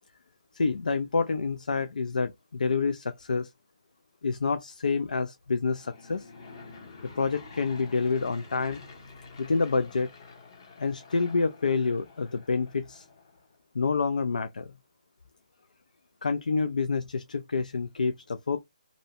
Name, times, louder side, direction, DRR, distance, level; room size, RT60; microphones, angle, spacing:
voice 1, 0.5-3.5 4.2-6.3 7.2-8.8 9.4-10.1 10.8-13.0 13.7-14.7 16.2-18.6, left 4 dB, 85° left, 0.3 m, -28 dB
Aircraft / Engine, 5.6-13.6, left 4 dB, 30° left, 0.6 m, -49 dB
2.5 x 2.0 x 2.6 m
hypercardioid pair, 165°, 4 cm